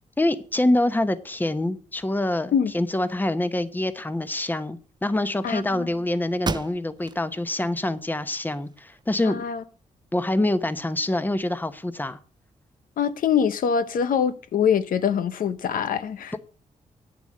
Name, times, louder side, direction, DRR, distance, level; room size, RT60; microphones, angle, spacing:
voice 1, 0.2-9.4 10.1-12.2, left 1 dB, 15° left, 0.9 m, -25 dB
voice 2, 5.4-5.9 9.2-9.6 13.0-16.4, left 7 dB, 85° left, 0.9 m, -24 dB
sound 1, 6.4-7.2 7.7-7.8 8.3-9.2, right 4 dB, 30° right, 0.6 m, -33 dB
9.1 x 7.0 x 7.5 m
cardioid pair, 105°, 14 cm